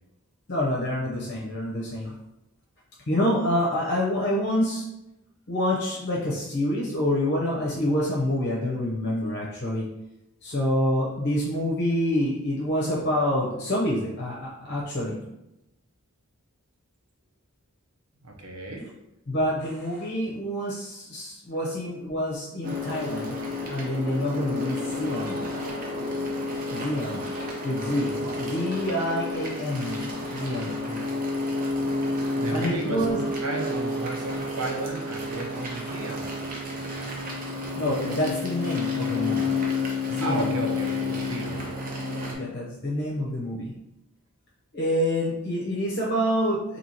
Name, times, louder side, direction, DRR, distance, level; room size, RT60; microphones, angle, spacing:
voice 1, 0.5-2.1 3.1-4.8 5.5-9.9 10.4-15.1 19.3-23.4 23.7-25.5 26.7-27.2 27.6-30.8 32.5-33.2 37.8-39.6 40.1-40.5 42.4-43.7 44.7-46.8, left 1 dB, 50° left, -4 dB, 0.6 m, -27 dB
voice 2, 18.2-18.9 28.2-28.3 30.8-31.1 32.3-36.4 40.2-41.7, right 2 dB, 80° right, 1 dB, 0.8 m, -33 dB
sound 1, 22.6-42.3, left 3 dB, 40° right, 0.7 m, -30 dB
4.4 x 2.8 x 2.8 m, 0.90 s
head